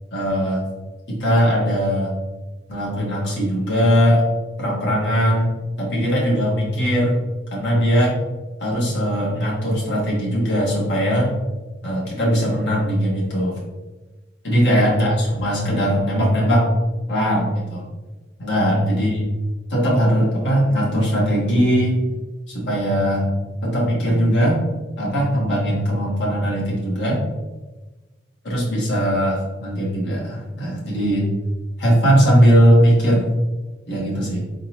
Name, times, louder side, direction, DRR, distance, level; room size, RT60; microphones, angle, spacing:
voice 1, 0.1-0.6 1.1-2.1 2.7-4.3 4.6-7.2 7.5-8.2 8.6-11.3 11.8-13.6 14.4-16.7 17.1-17.9 18.4-19.2 19.7-22.0 22.5-23.3 23.6-24.6 25.0-27.2 28.4-31.3 31.8-33.2 33.9-34.5, equal, 65° left, -4 dB, 1.4 m, -19 dB
3.8 x 3.8 x 2.9 m, 1.2 s
head